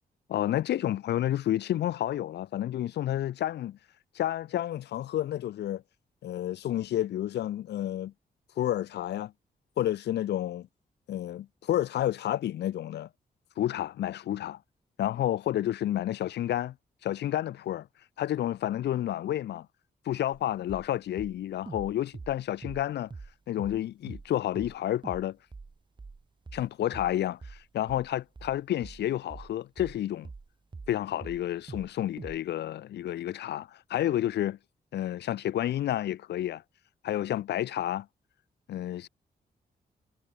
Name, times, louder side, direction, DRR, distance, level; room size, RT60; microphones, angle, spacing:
voice 1, 0.3-3.8 4.1-5.8 6.2-8.1 8.6-9.3 9.8-10.7 11.1-13.1 13.6-14.6 15.0-16.7 17.0-17.9 18.2-19.7 20.1-23.1 23.5-25.4 26.5-30.3 30.9-34.6 34.9-36.6 37.0-38.1 38.7-39.1, left 12 dB, 85° left, 0.5 m, -30 dB
sound 1, 20.3-20.4 20.7-20.9 21.2-23.3 23.6-23.8 24.1-24.3 24.5-24.8 25.0-25.3 25.5-31.0 31.2-31.9 32.2-32.4, right 4 dB, 30° right, 4.1 m, -44 dB
wide cardioid pair, 135°, 17 cm